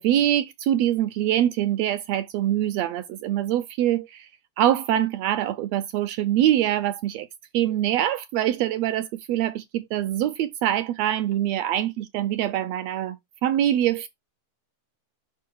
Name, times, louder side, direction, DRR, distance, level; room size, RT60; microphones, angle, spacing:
voice 1, 0.0-4.3 4.6-7.3 7.5-13.2 13.4-14.1, right 12 dB, 80° right, 1.6 m, -24 dB
5.8 x 4.7 x 4.6 m
omnidirectional pair, 3.4 m